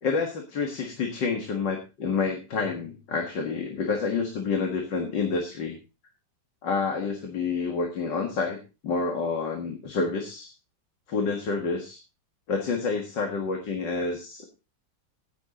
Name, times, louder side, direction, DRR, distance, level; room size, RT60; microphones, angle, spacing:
voice 1, 0.0-5.8 6.6-8.6 8.8-10.5 11.1-12.0 12.5-14.4, left 4 dB, 70° left, 3 dB, 2.4 m, -28 dB
16.5 x 7.5 x 3.8 m, 0.29 s
omnidirectional pair, 2.0 m